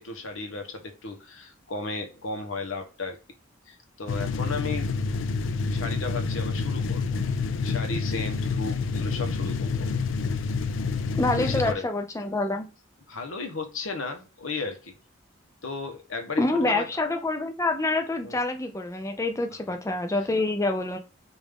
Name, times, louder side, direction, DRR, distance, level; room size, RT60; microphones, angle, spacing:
voice 1, 0.0-3.2 3.7-4.9 5.7-7.2 7.6-9.9 11.3-11.8 13.1-14.9 15.6-16.9 18.2-18.4, left 3 dB, 90° left, 1.0 m, -34 dB
sound 1, 4.1-11.7, left 4 dB, 70° left, 0.4 m, -28 dB
voice 2, 11.2-12.7 16.4-21.0, left 2 dB, 15° left, 0.5 m, -26 dB
5.1 x 2.6 x 3.5 m
head